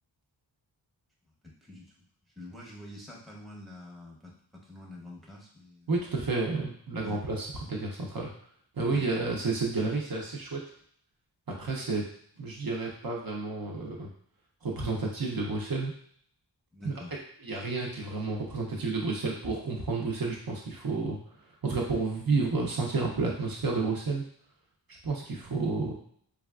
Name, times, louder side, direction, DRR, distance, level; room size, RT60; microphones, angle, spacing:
voice 1, 1.4-1.9 2.4-4.3 4.6-5.9 7.0-7.2 8.9-9.1 16.7-17.2, left 1 dB, ahead, -3 dB, 0.7 m, -46 dB
voice 2, 5.9-8.3 8.8-10.6 11.5-12.0 12.4-14.1 14.6-15.9 16.8-16.9 17.4-21.2 21.6-24.2 25.0-25.9, right 3 dB, 50° right, -1 dB, 0.6 m, -30 dB
3.3 x 2.3 x 2.3 m, 0.63 s
wide cardioid pair, 70°, 45 cm